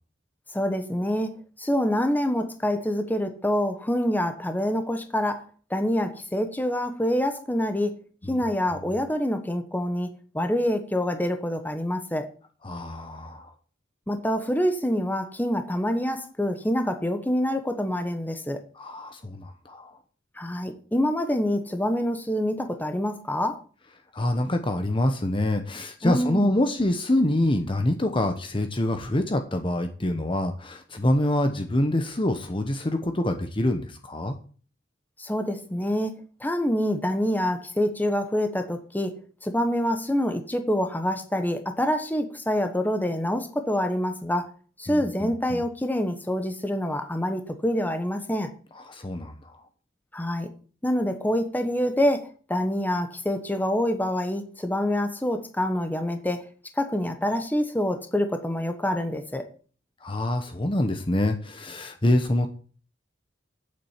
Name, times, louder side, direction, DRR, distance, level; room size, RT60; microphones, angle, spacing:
voice 1, 0.5-5.4 5.7-7.9 8.3-10.1 10.3-12.3 14.1-18.6 20.4-23.6 26.0-26.5 35.2-44.5 44.8-48.5 50.1-50.5 50.8-56.5 56.8-59.5, equal, 10° left, 7 dB, 1.2 m, -26 dB
voice 2, 12.6-13.5 18.8-20.0 24.1-34.4 44.9-45.6 48.7-49.6 60.0-62.5, left 1 dB, 25° left, 6 dB, 1.0 m, -26 dB
8.7 x 7.4 x 7.5 m, 0.41 s
head